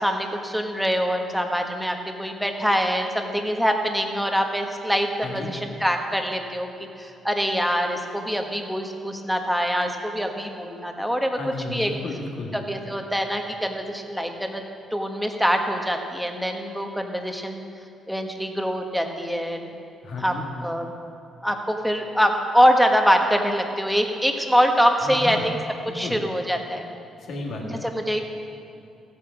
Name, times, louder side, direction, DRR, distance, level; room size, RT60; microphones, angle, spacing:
voice 1, 0.0-6.7 7.0-11.4 11.7-11.9 12.5-14.6 14.9-17.6 18.1-19.7 20.2-20.4 20.6-20.9 21.4-25.6 25.9-26.9 27.7-28.2, equal, ahead, 3 dB, 1.4 m, -24 dB
voice 2, 5.2-5.5 11.4-12.5 20.0-20.5 25.0-25.4 25.9-26.2 27.2-27.8, left 3 dB, 65° left, -1 dB, 2.3 m, -33 dB
14.5 x 8.6 x 6.1 m, 2.6 s
cardioid pair, 90°, 0 cm